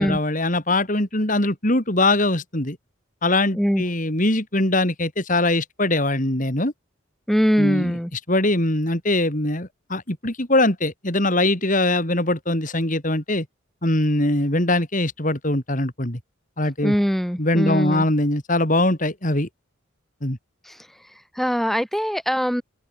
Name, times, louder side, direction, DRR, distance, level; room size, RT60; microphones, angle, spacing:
voice 1, 0.0-2.8 3.2-6.7 7.6-13.5 13.8-16.2 16.6-17.0 17.4-19.5 20.2-20.4, left 2 dB, 40° left, 3.9 m, -22 dB
voice 2, 7.3-8.1 16.8-18.0 20.7-20.8 21.4-22.6, equal, ahead, 5.8 m, -22 dB
open air
head